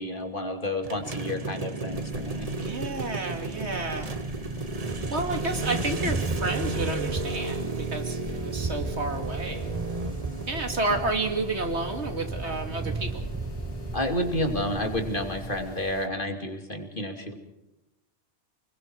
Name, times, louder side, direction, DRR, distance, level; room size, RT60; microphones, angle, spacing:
voice 1, 0.0-2.5 13.9-17.3, left 1 dB, 50° left, 4 dB, 3.0 m, -30 dB
sound 1, 0.8-15.1, right 3 dB, 35° right, 1.2 m, -35 dB
sound 2, 1.9-16.1, left 3 dB, 80° left, 1.9 m, -44 dB
voice 2, 2.6-4.1 5.1-9.7 10.5-13.2, right 2 dB, 75° right, 5 dB, 2.8 m, -31 dB
Thunder, 3.2-15.8, right 3 dB, 20° right, 0.6 m, -36 dB
30.0 x 21.5 x 4.7 m, 0.95 s
omnidirectional pair, 1.1 m